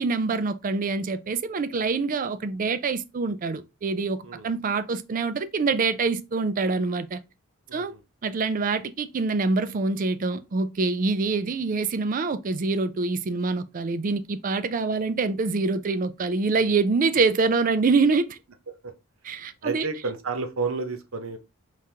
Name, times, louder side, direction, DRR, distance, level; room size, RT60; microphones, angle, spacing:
voice 1, 0.0-7.2 7.7-7.9 8.2-18.4 19.2-19.9, right 4 dB, 40° right, 0.4 m, -25 dB
voice 2, 7.7-8.0 17.1-17.2 18.8-18.9 19.6-21.4, right 4 dB, 75° right, 0.8 m, -31 dB
4.7 x 3.6 x 2.8 m
head